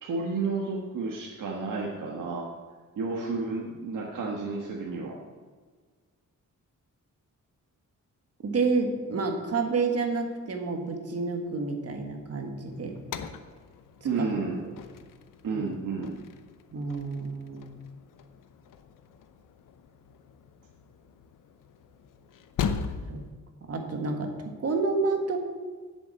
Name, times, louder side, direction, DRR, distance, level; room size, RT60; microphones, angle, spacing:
voice 1, 0.0-2.4 3.0-5.2 14.0-14.6 15.4-16.2, right 4 dB, 75° right, -2 dB, 1.4 m, -31 dB
voice 2, 8.4-12.9 14.2-14.3 14.6-14.8 15.5-15.6 16.7-17.8 23.1-23.2 23.7-25.4, right 4 dB, 50° right, 4 dB, 1.6 m, -29 dB
sound 1, 12.7-23.3, left 6 dB, 80° left, 0.8 m, -40 dB
8.3 x 7.2 x 7.4 m, 1.5 s
wide cardioid pair, 125°, 32 cm